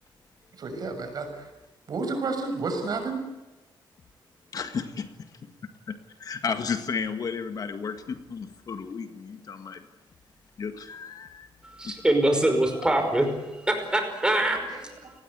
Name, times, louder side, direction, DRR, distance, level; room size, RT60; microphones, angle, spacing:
voice 1, 0.6-1.5 1.9-3.2 14.5-15.1, right 3 dB, 50° right, 6 dB, 6.4 m, -31 dB
voice 2, 4.5-5.1 5.9-9.8 10.6-11.5 11.8-12.0 12.4-12.5, left 5 dB, 45° left, 8 dB, 1.8 m, -33 dB
voice 3, 11.8-13.3 13.7-14.6, right 1 dB, 10° right, 5 dB, 5.3 m, -23 dB
29.5 x 20.0 x 8.3 m, 1.1 s
wide cardioid pair, 175°, 8 cm